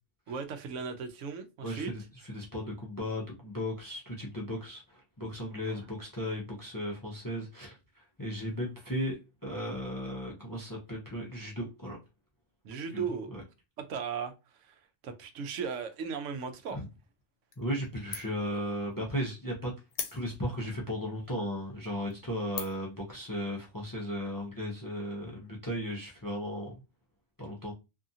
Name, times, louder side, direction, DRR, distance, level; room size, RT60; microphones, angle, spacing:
voice 1, 0.3-1.9 5.7-5.8 12.6-13.3 13.8-16.8, right 6 dB, 80° right, 0.9 m, -37 dB
voice 2, 1.6-12.0 12.9-13.4 16.7-16.9 17.6-19.7 20.1-26.8 27.4-27.7, equal, 25° left, 0.5 m, -36 dB
sound 1, 17.5-17.9 18.1-18.5 18.9-19.0 19.9-20.6 21.3-21.4 21.9-22.1 22.5-23.0, left 7 dB, 85° left, 1.0 m, -39 dB
2.7 x 2.4 x 2.6 m
omnidirectional pair, 1.3 m